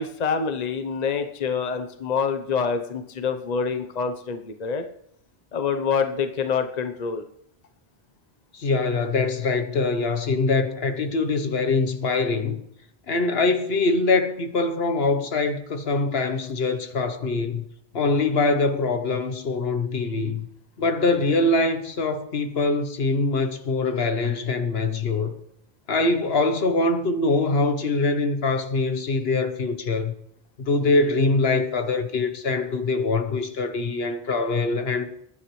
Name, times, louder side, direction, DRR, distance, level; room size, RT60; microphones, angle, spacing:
voice 1, 0.0-4.8 5.5-7.2, left 5 dB, 45° left, 0.9 m, -26 dB
voice 2, 8.5-12.6 13.1-17.6 17.9-20.5 20.8-25.3 25.9-30.1 30.6-35.0, left 3 dB, 75° left, 1.3 m, -23 dB
21.0 x 9.7 x 3.2 m
omnidirectional pair, 1.0 m